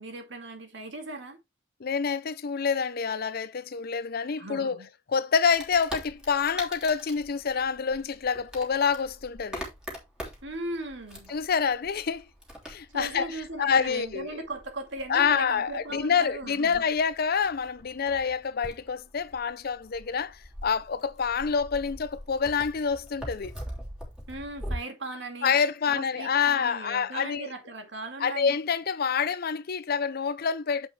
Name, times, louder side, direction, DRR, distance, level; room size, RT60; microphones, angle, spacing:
voice 1, 0.0-1.4 4.4-4.9 10.4-11.3 12.9-16.9 24.3-25.5 25.9-28.6, right 2 dB, 70° right, 2.2 m, -38 dB
voice 2, 1.8-4.8 5.1-9.6 11.3-12.3 12.7-14.4 15.1-23.5 25.4-27.5 28.2-30.9, left 6 dB, 55° left, 0.6 m, -27 dB
Wood, 5.5-24.8, equal, 5° right, 3.1 m, -43 dB
8.0 x 5.6 x 3.3 m
head